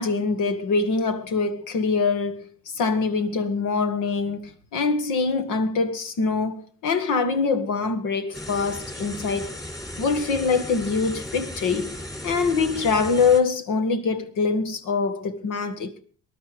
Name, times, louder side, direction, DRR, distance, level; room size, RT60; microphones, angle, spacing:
voice 1, 0.0-2.5 2.7-9.5 10.0-12.0 12.2-15.9, left 4 dB, 90° left, 1.9 m, -24 dB
sound 1, 8.3-13.4, left 1 dB, 10° left, 4.2 m, -36 dB
20.0 x 11.5 x 5.2 m
cardioid pair, 90°, 30 cm